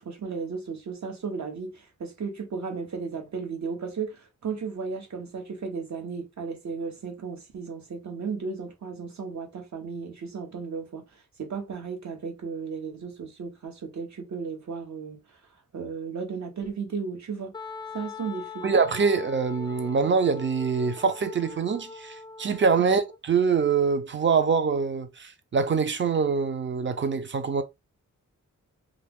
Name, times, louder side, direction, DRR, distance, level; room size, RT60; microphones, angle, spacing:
voice 1, 0.0-11.0 11.4-15.2 15.7-17.5 17.9-18.6 22.8-23.0, right 5 dB, 60° right, 1.0 m, -35 dB
Wind instrument woodwind instrument, 17.5-23.2, left 5 dB, 15° left, 0.4 m, -42 dB
voice 2, 18.6-27.6, right 5 dB, 40° right, 0.6 m, -24 dB
2.4 x 2.4 x 3.5 m
cardioid pair, 75°, 31 cm